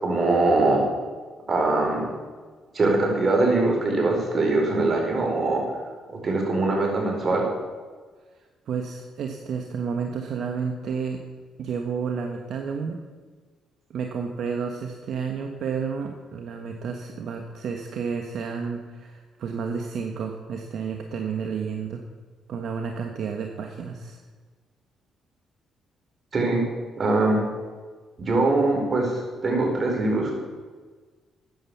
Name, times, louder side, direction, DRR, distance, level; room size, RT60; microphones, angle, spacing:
voice 1, 0.0-0.8 1.5-2.0 2.7-5.6 6.2-7.4 26.3-26.6 27.0-27.4 28.2-30.3, right 2 dB, 40° right, 1 dB, 4.8 m, -22 dB
voice 2, 8.3-11.2 11.6-13.0 13.9-22.0 22.5-24.2, right 6 dB, 70° right, 4 dB, 1.3 m, -31 dB
13.5 x 9.3 x 7.1 m, 1.4 s
cardioid pair, 90°, 0 cm